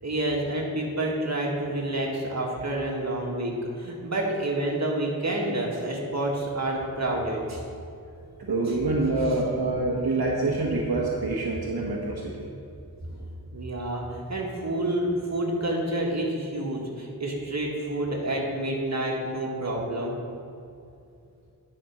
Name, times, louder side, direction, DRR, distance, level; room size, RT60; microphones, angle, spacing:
voice 1, 0.0-7.6 9.2-9.3 13.1-13.2 13.5-20.2, right 1 dB, 45° right, -2 dB, 1.8 m, -29 dB
voice 2, 8.4-12.5, right 2 dB, 70° right, -3 dB, 1.1 m, -26 dB
10.5 x 4.4 x 6.0 m, 2.5 s
wide cardioid pair, 65°, 38 cm